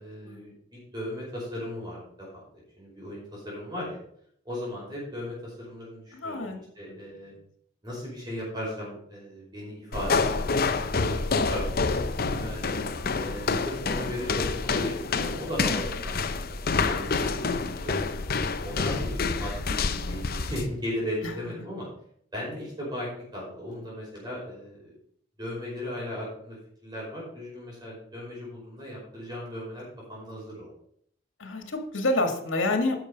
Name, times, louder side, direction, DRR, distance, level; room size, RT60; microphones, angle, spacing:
voice 1, 0.0-4.0 4.4-7.3 7.8-12.7 13.2-16.6 16.9-18.2 18.6-21.9 22.3-24.9 25.4-30.7, equal, 20° right, -5 dB, 5.1 m, -37 dB
voice 2, 6.1-6.6 21.2-21.5 31.4-32.9, left 2 dB, 85° left, 5 dB, 1.9 m, -28 dB
sound 1, 9.9-20.7, left 4 dB, 50° left, 0.7 m, -28 dB
11.0 x 6.7 x 5.3 m, 0.67 s
head